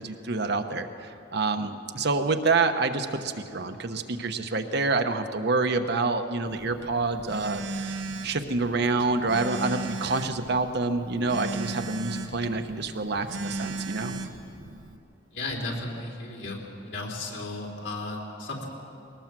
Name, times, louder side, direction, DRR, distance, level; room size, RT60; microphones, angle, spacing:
voice 1, 0.0-14.2, right 3 dB, 60° right, 6 dB, 1.1 m, -27 dB
Telephone, 6.5-15.0, right 3 dB, 85° right, 1.2 m, -37 dB
voice 2, 15.3-18.7, left 2 dB, 70° left, 0 dB, 3.5 m, -34 dB
21.0 x 18.5 x 7.6 m, 2.7 s
head